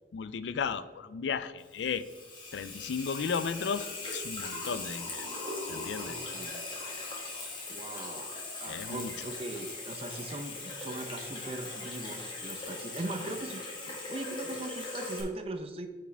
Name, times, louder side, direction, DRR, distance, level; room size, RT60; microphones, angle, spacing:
voice 1, 0.1-2.0 2.5-5.3 5.6-6.2 8.6-9.1, left 6 dB, 85° left, 14 dB, 0.4 m, -34 dB
Water tap faucet / Sink (filling or washing), 1.6-15.2, left 2 dB, 25° left, 1.4 m, -40 dB
voice 2, 6.1-6.6 7.7-8.3 8.6-15.9, right 2 dB, 35° right, 7 dB, 0.6 m, -40 dB
8.9 x 4.8 x 3.4 m, 1.3 s
head